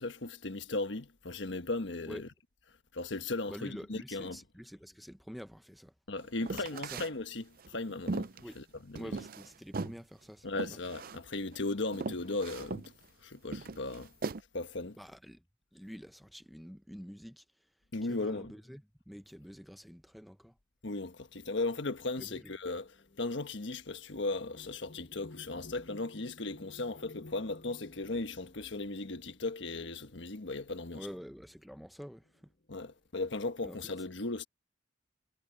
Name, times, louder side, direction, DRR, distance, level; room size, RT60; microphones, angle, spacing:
voice 1, 0.0-2.3 2.9-4.4 6.1-9.1 10.4-12.9 13.2-14.1 14.5-15.0 17.9-18.5 20.8-22.9 23.2-31.1 32.7-34.4, left 2 dB, 70° left, 1.3 m, -37 dB
voice 2, 3.5-5.9 6.5-7.0 8.4-8.6 9.0-10.8 15.0-15.4 15.7-17.7 18.0-20.6 22.2-22.5 30.9-32.5 33.6-33.8, equal, ahead, 0.7 m, -48 dB
sound 1, 6.4-7.1 7.6-9.5 9.7-10.0 10.6-11.2 11.5-11.6 11.9-12.9 13.5-14.4, right 3 dB, 50° right, 0.5 m, -38 dB
sound 2, 22.4-30.7 31.6-31.7 32.1-32.7, left 2 dB, 50° left, 1.7 m, -56 dB
head